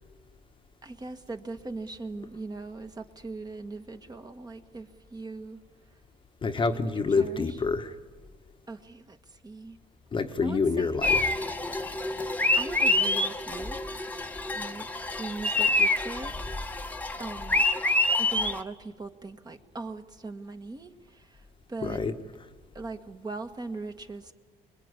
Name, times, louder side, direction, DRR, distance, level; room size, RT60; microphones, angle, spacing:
voice 1, 0.8-5.6 7.1-7.6 8.7-9.8 10.4-11.0 12.6-13.8 14.5-14.9 15.2-16.7 17.2-17.6 18.2-22.0 22.7-24.3, right 3 dB, 25° right, 1.5 m, -40 dB
voice 2, 6.4-7.9 10.1-11.2 21.8-22.1, left 4 dB, 30° left, 1.2 m, -27 dB
sound 1, 11.0-18.6, left 2 dB, 10° left, 1.2 m, -27 dB
25.5 x 20.5 x 9.8 m
cardioid pair, 110°, 17 cm